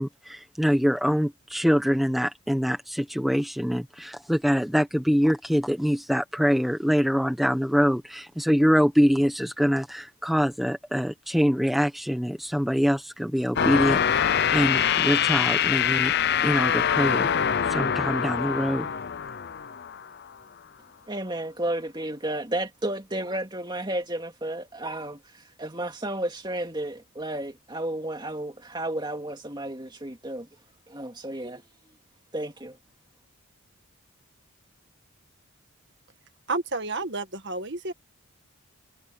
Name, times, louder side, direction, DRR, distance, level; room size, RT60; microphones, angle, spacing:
voice 1, 0.0-14.3 14.5-16.1 16.4-17.3 17.6-18.9, equal, ahead, 1.2 m, -24 dB
sound 1, 13.6-20.1, left 8 dB, 45° left, 0.5 m, -24 dB
voice 2, 21.1-30.5 30.9-31.6 32.3-32.8, right 1 dB, 20° right, 2.5 m, -32 dB
voice 3, 36.5-37.9, right 3 dB, 50° right, 1.9 m, -30 dB
head